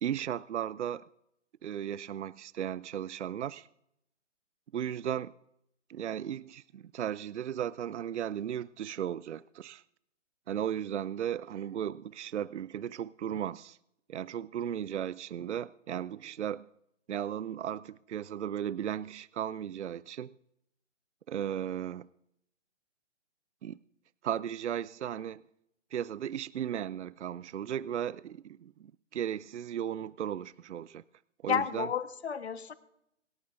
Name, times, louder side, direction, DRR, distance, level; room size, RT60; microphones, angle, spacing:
voice 1, 0.0-1.0 1.6-3.7 4.7-5.3 5.9-9.8 10.5-13.8 14.1-16.7 17.1-20.3 21.3-22.1 23.6-23.8 24.2-25.4 25.9-31.0 31.4-31.9, right 10 dB, 70° right, 20 dB, 0.5 m, -36 dB
voice 2, 31.5-32.7, left 8 dB, 60° left, 12 dB, 1.3 m, -31 dB
26.5 x 12.0 x 2.6 m, 0.79 s
figure-of-eight pair, 145°, 37 cm